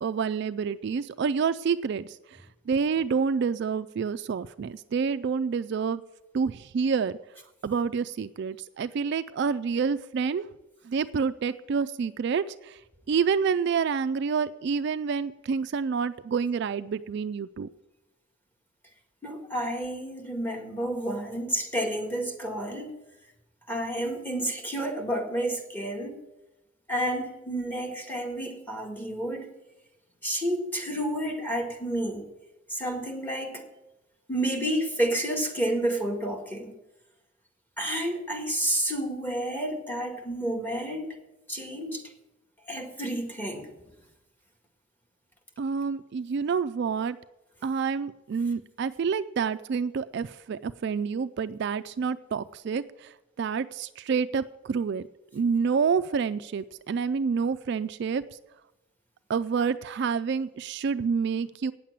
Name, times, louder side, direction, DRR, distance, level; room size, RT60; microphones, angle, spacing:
voice 1, 0.0-6.0 6.3-7.2 7.6-10.4 10.8-12.8 13.1-17.7 45.6-47.2 47.6-55.0 55.3-58.2 59.3-61.7, right 6 dB, 55° right, 12 dB, 0.3 m, -28 dB
voice 2, 19.2-22.9 23.7-26.2 26.9-29.5 30.2-32.3 32.7-33.7 34.3-36.8 37.8-41.2 41.5-42.0 42.7-43.7, right 1 dB, 10° left, 2 dB, 1.7 m, -30 dB
9.2 x 7.4 x 8.7 m, 0.95 s
head